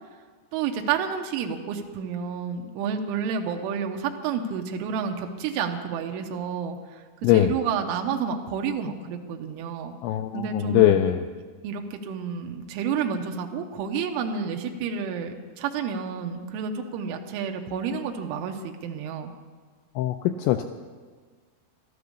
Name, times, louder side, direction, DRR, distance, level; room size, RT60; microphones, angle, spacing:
voice 1, 0.5-10.0 10.3-11.0 11.6-19.3, right 6 dB, 85° right, 3 dB, 3.3 m, -30 dB
voice 2, 10.0-11.2 20.0-20.6, left 13 dB, 85° left, 7 dB, 2.6 m, -21 dB
13.0 x 13.0 x 6.7 m, 1.5 s
omnidirectional pair, 5.7 m